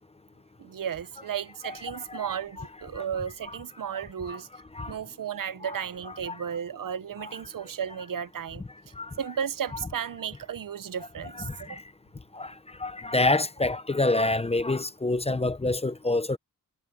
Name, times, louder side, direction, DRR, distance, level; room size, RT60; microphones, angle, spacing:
voice 1, 0.6-4.5 4.9-8.6 9.2-11.8, right 8 dB, 75° right, 0.8 m, -34 dB
voice 2, 1.9-2.3 2.9-3.1 3.4-3.6 4.3-4.4 4.7-5.0 5.6-5.8 6.3-6.4 9.0-9.1 11.4-11.8 12.3-16.4, left 2 dB, 20° left, 0.6 m, -27 dB
wide cardioid pair, 160°, 33 cm